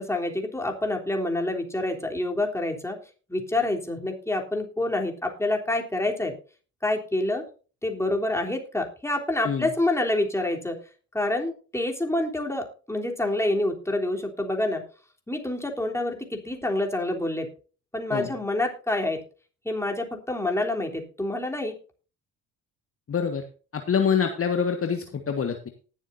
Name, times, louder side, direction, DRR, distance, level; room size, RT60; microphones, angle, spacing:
voice 1, 0.0-3.0 3.3-6.3 6.8-7.4 7.8-10.8 11.1-14.8 15.3-17.5 17.9-19.2 19.7-21.7, left 2 dB, 5° left, 2 dB, 3.4 m, -27 dB
voice 2, 23.1-23.4 23.7-25.7, left 6 dB, 35° left, 6 dB, 1.6 m, -25 dB
19.5 x 7.4 x 2.7 m, 0.37 s
hypercardioid pair, 55°, 37 cm